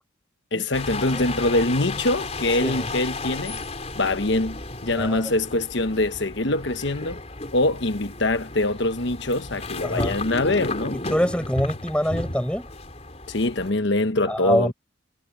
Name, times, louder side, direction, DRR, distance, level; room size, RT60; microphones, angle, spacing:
voice 1, 0.5-3.6 3.9-7.2 7.5-11.0 13.3-14.7, left 2 dB, 65° left, 1.2 m, -24 dB
sound 1, 0.7-13.7, left 2 dB, 35° left, 4.5 m, -34 dB
voice 2, 9.8-10.2 10.9-12.7 14.3-14.7, equal, 5° left, 4.4 m, -25 dB
head